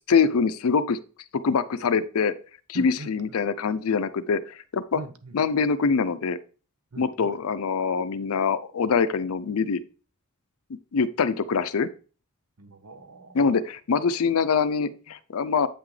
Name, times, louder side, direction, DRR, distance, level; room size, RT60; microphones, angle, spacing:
voice 1, 0.1-1.0 1.3-2.3 2.7-5.0 5.3-6.4 7.0-9.8 10.9-11.9 13.3-15.7, left 5 dB, 70° left, 13 dB, 0.5 m, -24 dB
voice 2, 2.7-3.1 4.9-5.4 6.9-7.4 12.6-13.4 14.2-14.4 14.8-15.0, right 2 dB, 75° right, 10 dB, 0.9 m, -41 dB
8.2 x 6.0 x 3.2 m, 0.37 s
head